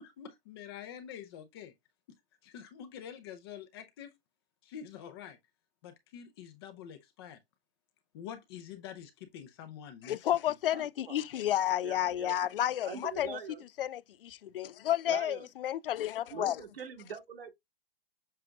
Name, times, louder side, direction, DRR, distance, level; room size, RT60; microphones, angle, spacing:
voice 1, 0.0-1.7 2.1-2.2 2.4-4.1 4.6-5.4 5.8-7.4 8.1-10.2, left 9 dB, 25° left, 0.6 m, -46 dB
voice 2, 10.0-13.4 13.8-16.6, left 12 dB, 70° left, 0.4 m, -31 dB
voice 3, 10.7-11.2 11.8-12.3 12.8-13.6 15.1-15.4 16.3-17.5, right 7 dB, 75° right, 1.6 m, -43 dB
7.5 x 2.8 x 2.3 m
hypercardioid pair, 155°, 29 cm